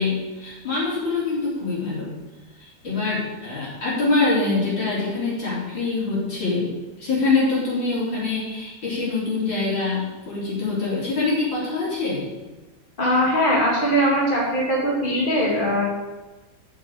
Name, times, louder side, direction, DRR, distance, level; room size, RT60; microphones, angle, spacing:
voice 1, 0.0-2.1 2.6-6.7 7.0-12.3, left 3 dB, 75° left, -7 dB, 4.3 m, -24 dB
voice 2, 13.0-15.9, equal, 25° left, -4 dB, 2.7 m, -21 dB
7.1 x 7.0 x 7.8 m, 1.1 s
omnidirectional pair, 2.1 m